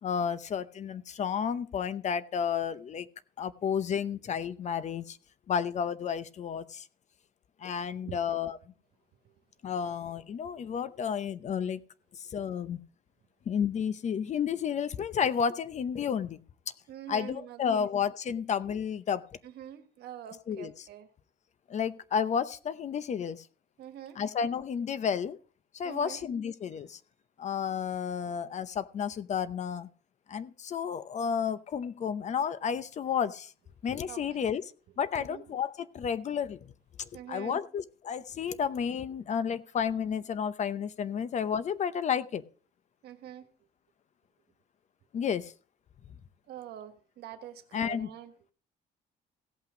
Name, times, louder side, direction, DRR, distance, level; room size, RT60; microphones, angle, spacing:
voice 1, 0.0-3.1 3.4-5.2 5.5-6.9 7.6-8.6 9.6-11.8 12.1-12.8 13.5-16.4 17.1-19.2 20.5-20.7 21.7-23.5 24.2-25.4 25.7-27.0 27.4-29.9 30.3-33.5 33.8-34.6 35.0-36.7 37.0-42.4 45.1-45.5 47.7-48.1, left 7 dB, 45° left, 0.7 m, -31 dB
voice 2, 16.9-17.9 19.4-21.1 23.8-24.2 25.8-26.3 28.3-28.4 34.1-34.6 35.2-35.6 37.1-37.6 43.0-43.5 46.5-48.3, right 11 dB, 70° right, 1.5 m, -45 dB
16.5 x 5.8 x 5.1 m
cardioid pair, 110°, 17 cm